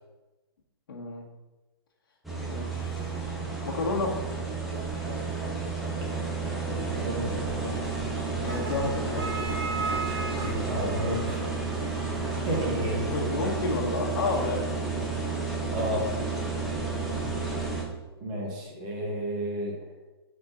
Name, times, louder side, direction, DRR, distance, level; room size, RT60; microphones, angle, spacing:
voice 1, 0.9-1.2 2.5-3.2 3.6-4.2 8.4-9.3 12.3-12.7 13.1-14.6 16.7-16.9, left 3 dB, 60° left, -2 dB, 1.8 m, -31 dB
sound 1, 2.2-17.8, right 4 dB, ahead, 0.5 m, -31 dB
sound 2, 4.7-15.9, right 3 dB, 65° right, 1.8 m, -40 dB
voice 2, 6.6-7.7 10.4-11.4 12.4-13.1 15.7-16.1 18.2-19.8, equal, 20° right, -1 dB, 1.1 m, -32 dB
5.8 x 3.8 x 5.6 m, 1.1 s
hypercardioid pair, 175°, 13 cm